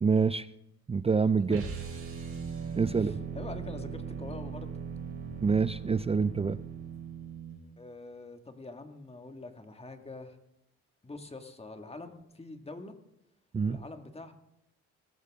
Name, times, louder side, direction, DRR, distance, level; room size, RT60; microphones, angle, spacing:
voice 1, 0.0-0.5 0.9-1.6 2.8-3.1 5.4-6.6 13.5-13.8, right 5 dB, 20° right, 15 dB, 0.4 m, -26 dB
sound 1, 1.5-7.6, right 6 dB, 45° right, 4.4 m, -39 dB
voice 2, 2.9-4.7 7.8-10.4 11.0-12.9 13.7-14.3, left 2 dB, 20° left, 6 dB, 1.9 m, -45 dB
19.5 x 13.5 x 3.7 m, 0.82 s
cardioid pair, 90°, 30 cm